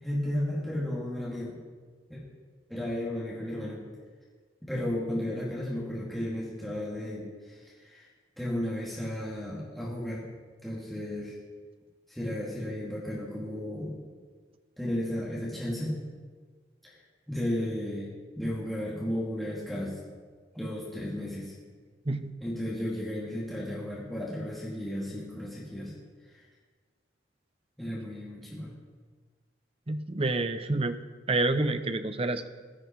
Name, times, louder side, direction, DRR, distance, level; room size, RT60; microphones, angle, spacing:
voice 1, 0.0-1.6 2.1-2.2 2.7-3.8 4.6-8.1 8.4-10.2 10.6-11.3 12.1-13.9 14.8-15.9 16.8-16.9 17.3-18.1 18.3-20.0 20.5-21.5 22.4-25.9 26.3-26.4 27.8-28.7, left 1 dB, ahead, -7 dB, 2.5 m, -34 dB
voice 2, 29.9-31.0 31.3-32.4, right 2 dB, 30° right, 10 dB, 0.7 m, -28 dB
16.0 x 12.0 x 4.7 m, 1.5 s
head